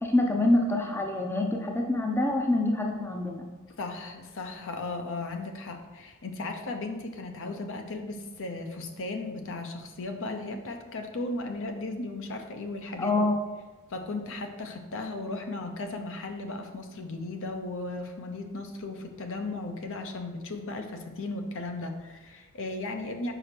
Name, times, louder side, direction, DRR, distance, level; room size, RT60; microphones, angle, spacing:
voice 1, 0.0-3.4 13.0-13.4, left 2 dB, 10° left, 1 dB, 0.5 m, -26 dB
voice 2, 3.8-13.2 13.9-23.3, left 2 dB, 65° left, 5 dB, 0.7 m, -36 dB
4.9 x 4.9 x 4.4 m, 1.2 s
head